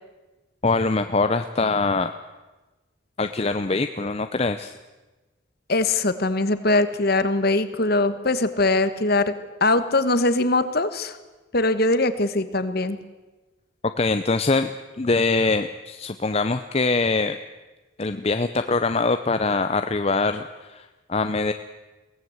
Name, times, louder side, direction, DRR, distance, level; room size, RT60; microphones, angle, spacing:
voice 1, 0.6-2.1 3.2-4.8 14.0-14.7 15.0-17.4 18.0-21.5, left 3 dB, 30° left, 9 dB, 0.6 m, -23 dB
voice 2, 5.7-9.3 9.6-11.2 11.5-13.0, left 2 dB, 50° left, 12 dB, 1.3 m, -21 dB
22.5 x 17.5 x 8.0 m, 1.2 s
head